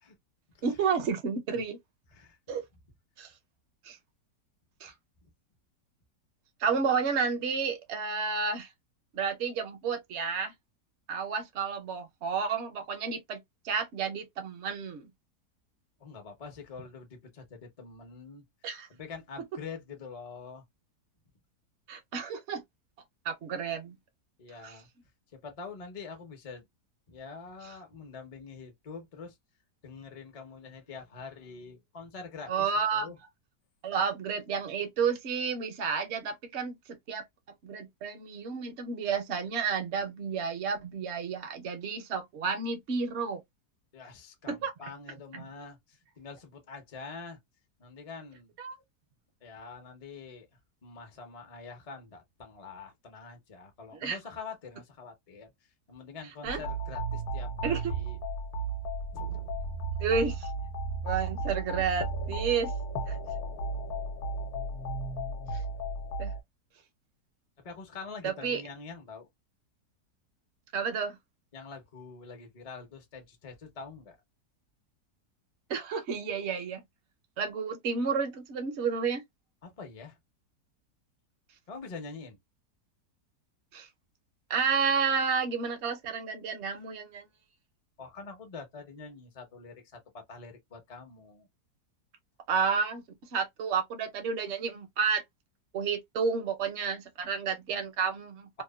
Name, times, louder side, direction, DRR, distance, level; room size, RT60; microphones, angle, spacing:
voice 1, 0.6-1.8 2.5-2.6 3.2-3.3 3.8-4.0 4.8-4.9 6.6-8.7 9.1-10.5 11.1-13.4 13.6-15.1 18.6-18.9 21.9-22.6 23.2-24.0 24.6-24.7 32.5-33.1 33.8-36.8 37.1-37.2 37.6-43.4 44.5-44.7 45.3-45.4 48.6-48.8 54.0-54.2 56.4-56.6 57.6-57.8 60.0-60.5 61.0-62.7 63.1-63.2 65.5-65.6 66.2-66.3 68.2-68.6 70.7-71.2 75.7-76.8 77.4-79.2 83.7-83.9 84.5-87.3 92.5-93.0 93.3-95.2 95.7-98.6, right 5 dB, 65° right, 0.7 m, -31 dB
voice 2, 16.0-18.4 18.9-20.6 24.4-24.9 25.3-26.7 27.1-29.4 29.8-33.2 43.9-47.4 47.8-48.5 49.4-50.5 50.8-58.2 59.1-59.5 67.6-69.3 71.5-74.2 79.6-80.2 81.7-82.4 88.0-91.5, left 4 dB, 50° left, 0.4 m, -45 dB
sound 1, 56.5-66.4, right 2 dB, 70° left, 1.2 m, -34 dB
2.9 x 2.1 x 2.2 m
omnidirectional pair, 1.8 m